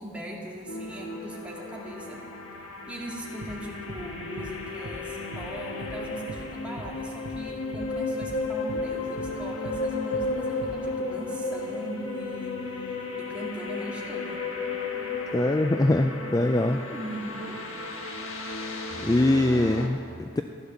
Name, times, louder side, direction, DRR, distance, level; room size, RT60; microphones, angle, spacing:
voice 1, 0.0-2.2 2.9-14.4 16.7-17.6, right 1 dB, 5° right, -4 dB, 2.0 m, -40 dB
sound 1, 0.7-19.9, left 3 dB, 85° left, 1.6 m, -34 dB
sound 2, 3.4-3.6 3.9-4.1 4.4-4.5 4.9-5.0 5.3-5.5 5.8-6.0 6.3-6.5 6.8-6.9 7.2-7.4 7.7-7.9 8.2-8.4 8.7-8.9 9.2-9.3 9.7-9.8 10.1-10.3 10.6-10.8, right 2 dB, 75° right, 1.0 m, -40 dB
voice 2, 15.3-16.8 19.0-20.4, left 1 dB, 15° left, 6 dB, 0.3 m, -23 dB
15.0 x 11.0 x 7.0 m, 2.5 s
head